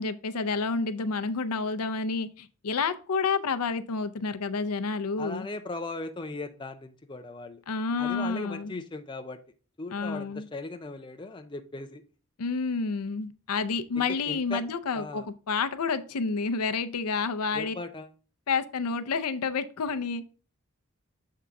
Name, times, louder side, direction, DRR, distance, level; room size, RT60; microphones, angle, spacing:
voice 1, 0.0-5.5 7.7-8.7 9.9-10.5 12.4-17.7 18.5-20.2, left 4 dB, 90° left, 11 dB, 0.6 m, -29 dB
voice 2, 5.2-7.6 8.0-9.4 9.8-12.0 14.0-14.6 14.9-15.3 17.5-18.1, left 3 dB, 20° left, 6 dB, 0.4 m, -38 dB
6.9 x 3.7 x 4.6 m, 0.37 s
head